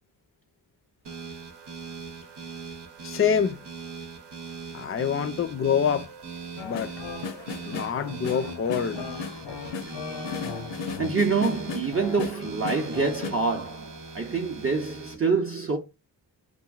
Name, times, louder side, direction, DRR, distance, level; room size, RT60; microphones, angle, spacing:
sound 1, 1.0-15.2, right 4 dB, 65° right, 0.8 m, -40 dB
voice 1, 3.0-3.6 4.7-6.1 6.6-6.9 7.6-9.1, left 7 dB, 30° left, 0.4 m, -26 dB
sound 2, 6.6-13.3, left 5 dB, 80° left, 0.7 m, -36 dB
voice 2, 11.0-15.8, right 4 dB, 30° right, 0.6 m, -26 dB
2.9 x 2.6 x 2.3 m
cardioid pair, 55°, 44 cm